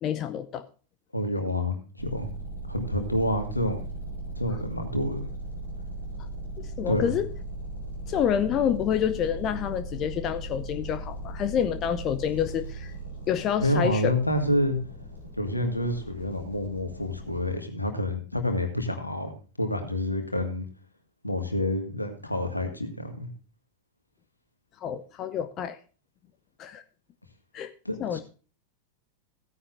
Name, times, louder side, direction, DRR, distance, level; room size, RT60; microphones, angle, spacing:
voice 1, 0.0-0.6 6.6-7.3 8.1-12.9 13.3-14.1 24.8-25.8 26.6-26.8 27.5-27.7 28.0-28.2, left 9 dB, 35° left, 11 dB, 0.7 m, -28 dB
voice 2, 1.1-2.3 2.6-3.8 4.4-5.3 6.9-7.0 13.6-14.8 15.4-19.3 19.6-20.7 21.2-23.3 27.9-28.2, left 1 dB, 85° left, 5 dB, 1.8 m, -28 dB
sound 1, 2.0-17.5, right 1 dB, 90° right, 4.3 m, -38 dB
16.0 x 9.7 x 2.6 m, 0.36 s
figure-of-eight pair, 90°, 0 cm